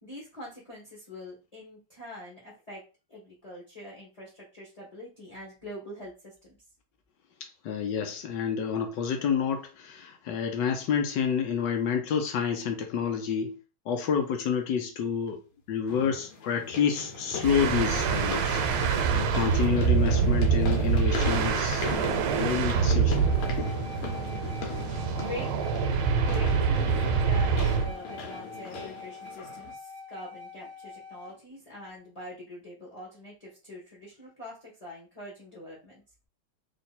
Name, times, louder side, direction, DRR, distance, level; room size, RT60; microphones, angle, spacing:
voice 1, 0.0-2.8 3.1-6.6 24.0-24.6 25.1-25.5 26.1-36.0, left 1 dB, 20° left, 1.3 m, -44 dB
voice 2, 7.4-13.6 13.9-15.4 15.7-18.9 19.1-23.3, left 7 dB, 70° left, 1.2 m, -29 dB
sound 1, 13.9-14.0 15.9-29.7, left 4 dB, 90° left, 1.8 m, -39 dB
sound 2, 17.4-27.9, right 6 dB, 80° right, 1.5 m, -25 dB
sound 3, 23.1-31.3, left 4 dB, 60° right, 0.5 m, -44 dB
3.3 x 3.2 x 4.2 m
omnidirectional pair, 2.3 m